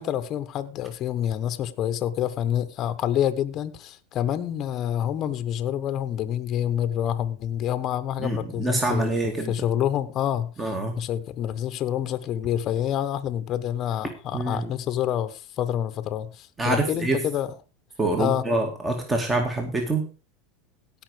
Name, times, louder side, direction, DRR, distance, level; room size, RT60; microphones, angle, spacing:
voice 1, 0.0-10.5 11.0-17.5 18.2-18.5, left 10 dB, 40° left, 1.0 m, -27 dB
voice 2, 8.2-9.5 10.6-11.0 14.3-14.7 16.6-17.2 18.0-20.1, right 2 dB, 15° right, 2.2 m, -25 dB
16.5 x 5.6 x 5.0 m
supercardioid pair, 115°, 0 cm